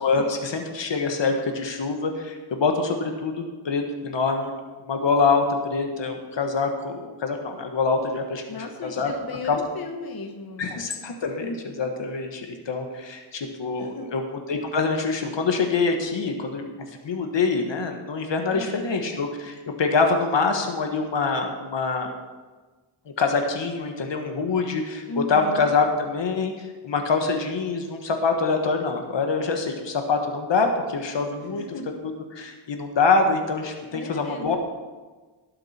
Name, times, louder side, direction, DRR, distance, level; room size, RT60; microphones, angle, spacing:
voice 1, 0.0-4.5 4.8-9.1 9.5-9.6 10.6-16.7 17.0-22.1 23.2-31.6 32.0-34.6, left 4 dB, 65° left, 4 dB, 1.6 m, -25 dB
voice 2, 8.5-10.7 13.8-14.1 18.5-19.0 25.1-25.6 31.4-31.8 33.9-34.6, left 3 dB, 50° left, 3 dB, 1.4 m, -36 dB
18.5 x 7.6 x 4.4 m, 1.3 s
wide cardioid pair, 105°, 46 cm